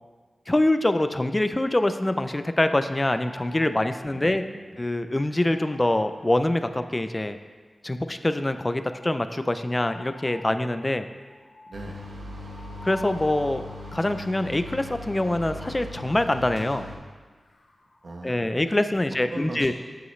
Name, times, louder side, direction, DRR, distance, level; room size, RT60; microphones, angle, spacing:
voice 1, 0.5-4.4 4.8-7.4 7.8-11.1 12.8-13.6 13.9-16.9 18.2-19.7, left 1 dB, 20° left, 10 dB, 0.4 m, -24 dB
sound 1, 1.5-2.6 3.0-7.4 8.1-14.8 15.5-18.1, left 2 dB, 55° left, 0.9 m, -50 dB
voice 2, 4.1-4.8 11.7-12.0 18.0-18.5 19.3-19.7, right 2 dB, 55° right, 1 dB, 0.9 m, -39 dB
sound 2, 11.7-17.0, left 2 dB, 85° right, 1.2 m, -39 dB
9.4 x 8.0 x 3.2 m, 1.4 s
wide cardioid pair, 115°, 0 cm